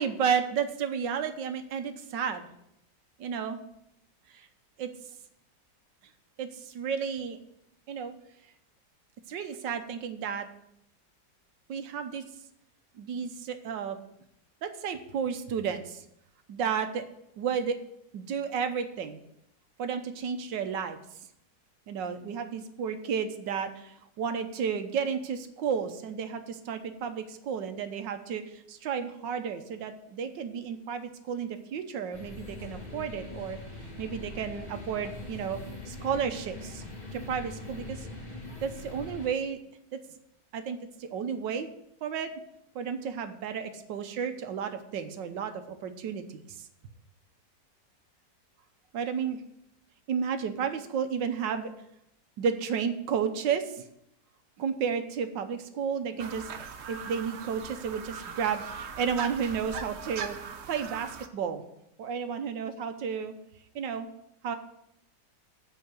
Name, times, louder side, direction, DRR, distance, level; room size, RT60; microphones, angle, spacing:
voice 1, 0.0-2.4 3.2-3.6 4.8-4.9 6.4-7.4 7.9-8.1 9.3-10.5 11.7-12.2 13.0-14.0 14.6-16.0 16.5-17.0 17.4-17.8 18.1-19.2 19.8-21.0 21.9-33.6 34.0-35.6 35.9-36.8 37.1-38.1 38.6-39.6 39.9-40.0 40.5-41.7 42.0-42.3 42.7-46.7 48.9-49.4 50.1-51.7 52.4-53.8 54.6-56.5 56.9-60.4 60.7-61.6 62.0-63.3 63.7-64.1 64.4-64.5, right 7 dB, 80° right, 8 dB, 1.5 m, -32 dB
sound 1, 32.1-39.3, left 2 dB, 25° left, 1.7 m, -42 dB
sound 2, 56.2-61.3, right 6 dB, 55° right, 0.8 m, -40 dB
8.3 x 5.7 x 7.7 m, 0.78 s
omnidirectional pair, 1.9 m